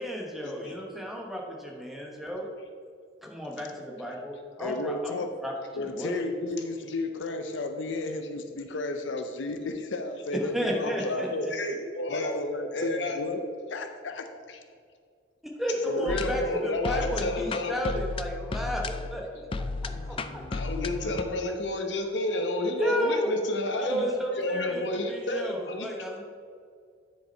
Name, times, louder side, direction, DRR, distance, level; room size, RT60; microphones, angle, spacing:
voice 1, 0.0-2.5 3.2-5.1 5.4-6.2 10.3-11.5 15.6-19.4 19.8-20.5 22.7-23.3 23.8-24.8 25.1-26.2, equal, ahead, -1 dB, 1.1 m, -32 dB
voice 2, 4.6-5.3 5.7-11.5 12.1-13.4 13.7-14.3, left 2 dB, 85° left, 6 dB, 0.6 m, -33 dB
voice 3, 10.8-12.4 12.7-13.2 15.9-18.0 20.5-24.1 24.3-25.9, left 2 dB, 65° left, 3 dB, 1.0 m, -30 dB
sound 1, 16.1-21.2, left 3 dB, 30° left, 0.3 m, -34 dB
9.7 x 5.2 x 4.4 m, 2.1 s
head